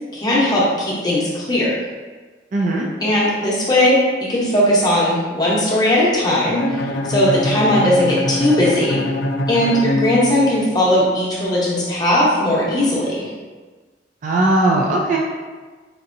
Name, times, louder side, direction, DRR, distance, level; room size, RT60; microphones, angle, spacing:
voice 1, 0.1-1.7 3.0-4.0 4.3-9.0 9.5-13.2, left 1 dB, 20° left, -7 dB, 0.8 m, -18 dB
voice 2, 2.5-2.9 14.2-15.2, right 2 dB, 40° right, -2 dB, 0.3 m, -18 dB
Bowed string instrument, 6.6-10.7, left 1 dB, 75° left, 0.3 m, -23 dB
4.4 x 2.6 x 2.6 m, 1.4 s
head